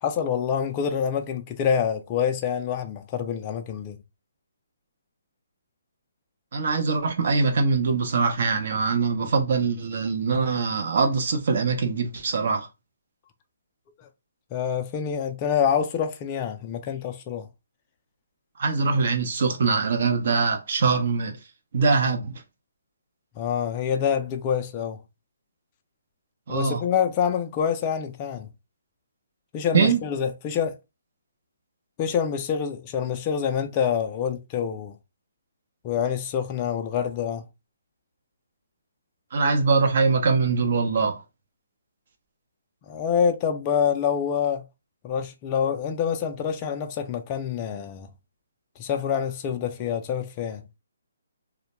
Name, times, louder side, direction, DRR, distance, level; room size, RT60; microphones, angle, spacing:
voice 1, 0.0-4.0 14.0-14.1 14.5-17.5 23.4-25.0 26.5-28.5 29.5-30.8 32.0-35.0 35.8-37.4 42.9-44.6 45.0-48.1 48.8-50.6, left 7 dB, 25° left, 0.3 m, -26 dB
voice 2, 6.5-12.7 18.6-21.4 21.7-22.3 26.5-26.8 29.7-30.0 39.3-41.2, right 4 dB, 55° right, 0.6 m, -23 dB
2.2 x 2.1 x 2.9 m
hypercardioid pair, 150°, 0 cm